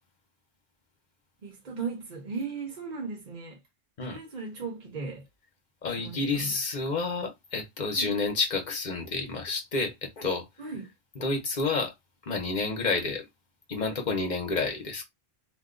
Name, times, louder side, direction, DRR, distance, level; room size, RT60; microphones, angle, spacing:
voice 1, 1.4-3.6 4.1-5.2 6.0-6.5 8.0-8.1 10.6-10.9, right 4 dB, 45° right, 0.9 m, -37 dB
voice 2, 5.8-10.5 11.2-11.9 12.2-13.3 13.7-15.0, left 3 dB, 50° left, 0.9 m, -29 dB
2.6 x 2.2 x 3.7 m
omnidirectional pair, 1.1 m